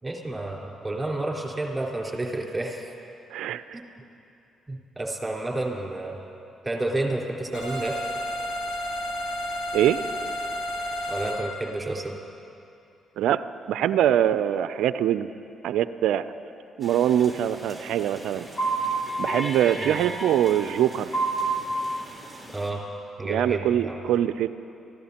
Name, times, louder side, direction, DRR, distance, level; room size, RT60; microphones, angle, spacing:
voice 1, 0.0-2.9 3.7-3.8 4.7-6.2 6.6-8.0 11.1-12.1 19.8-20.0 22.5-22.8 23.2-24.0, right 2 dB, 20° right, -2 dB, 4.2 m, -30 dB
voice 2, 3.3-3.8 9.7-10.0 13.2-13.4 13.7-15.3 15.6-16.2 16.8-18.5 19.2-21.1 23.3-24.5, right 11 dB, 75° right, 13 dB, 0.4 m, -23 dB
sound 1, 7.5-11.4, equal, 80° left, 3.1 m, -31 dB
sound 2, 16.8-22.7, right 2 dB, 10° left, 3.5 m, -31 dB
26.0 x 15.5 x 2.9 m, 2.7 s
hypercardioid pair, 50°, 0 cm